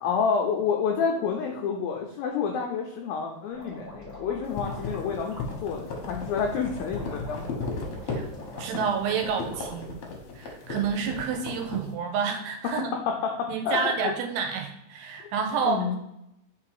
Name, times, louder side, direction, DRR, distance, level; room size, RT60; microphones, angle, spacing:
voice 1, 0.0-7.4 12.6-14.1 15.6-16.0, left 6 dB, 85° left, 1 dB, 2.0 m, -29 dB
sound 1, 3.5-9.7, equal, 30° right, 0.5 m, -45 dB
sound 2, 4.4-11.9, left 4 dB, 70° left, 1.6 m, -35 dB
voice 2, 8.6-10.0 10.3-12.9 13.5-16.0, right 6 dB, 80° right, 4 dB, 2.7 m, -29 dB
5.9 x 3.8 x 4.7 m, 0.84 s
omnidirectional pair, 4.9 m